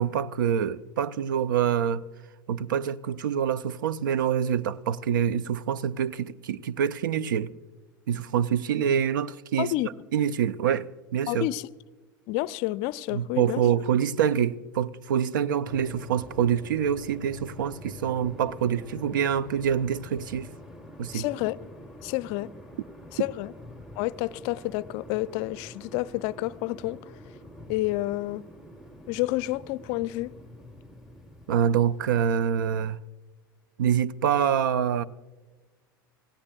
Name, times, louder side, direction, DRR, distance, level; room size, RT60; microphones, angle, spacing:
voice 1, 0.0-2.0 2.5-7.5 8.1-9.7 10.1-11.5 13.1-20.5 21.0-21.2 31.5-33.0 33.8-35.0, right 8 dB, 65° right, 0.5 m, -26 dB
voice 2, 9.6-9.9 11.3-11.7 12.3-13.6 21.1-21.6 22.0-22.5 23.1-23.5 24.0-27.0 27.7-28.4 29.1-30.3, left 18 dB, 50° left, 0.5 m, -29 dB
sound 1, 15.6-32.9, left 1 dB, 5° right, 1.1 m, -46 dB
26.5 x 17.5 x 2.3 m
figure-of-eight pair, 80°, 11 cm